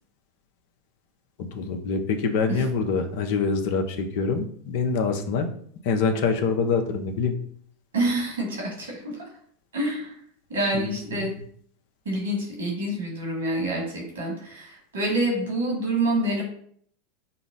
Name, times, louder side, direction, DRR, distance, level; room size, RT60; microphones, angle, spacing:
voice 1, 1.4-5.5 5.8-7.3 10.8-10.9 11.2-11.3, left 4 dB, 60° left, 6 dB, 0.7 m, -25 dB
voice 2, 7.9-9.2 9.7-10.2 10.5-11.3 12.1-16.4, right 1 dB, 80° right, -1 dB, 1.8 m, -27 dB
5.4 x 2.0 x 3.9 m, 0.63 s
hypercardioid pair, 90°, 0 cm